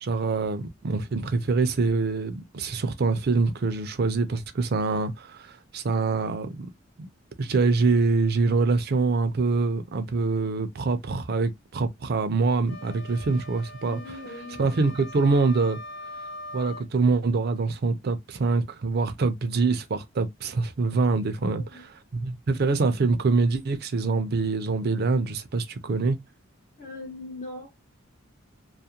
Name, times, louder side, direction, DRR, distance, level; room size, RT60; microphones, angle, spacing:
voice 1, 0.0-6.7 7.0-7.1 7.4-14.0 14.6-15.8 16.5-21.6 22.1-26.2, right 4 dB, 50° right, 0.4 m, -25 dB
sound 1, 12.7-16.9, left 1 dB, 85° left, 0.8 m, -42 dB
voice 2, 13.9-14.7 21.4-21.8 26.8-27.7, left 2 dB, 35° left, 0.6 m, -40 dB
2.4 x 2.1 x 2.7 m
head